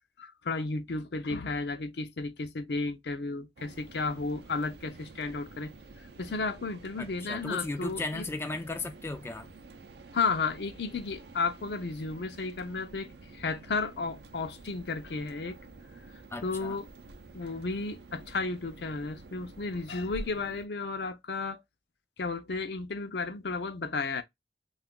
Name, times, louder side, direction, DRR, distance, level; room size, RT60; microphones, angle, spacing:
voice 1, 0.2-5.7 6.2-8.2 10.1-15.6 16.4-16.9 17.3-21.6 22.2-24.2, left 4 dB, 65° left, 0.5 m, -33 dB
sound 1, 3.6-20.7, right 2 dB, 70° right, 0.6 m, -49 dB
voice 2, 7.0-9.5 16.3-16.8, left 2 dB, 15° left, 0.3 m, -36 dB
2.7 x 2.4 x 3.6 m
head